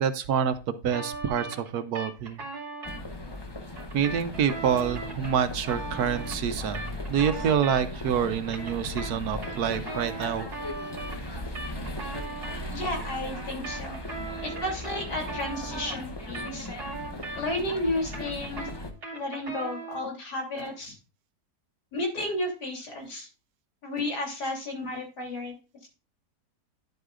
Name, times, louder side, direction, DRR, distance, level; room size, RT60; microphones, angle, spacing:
voice 1, 0.0-2.4 3.9-10.5, right 8 dB, 70° right, 1.3 m, -27 dB
sound 1, 0.9-3.0 3.7-8.1 8.4-12.6 13.3-17.7 18.0-20.1, right 3 dB, 45° right, 2.6 m, -39 dB
sound 2, 2.8-18.9, left 1 dB, 20° left, 0.7 m, -37 dB
voice 2, 12.7-14.0 14.4-16.7 17.3-18.7 19.1-20.9 21.9-23.3 23.8-25.5 25.8-25.9, left 1 dB, 80° left, 3.7 m, -32 dB
10.5 x 7.9 x 2.5 m
omnidirectional pair, 1.7 m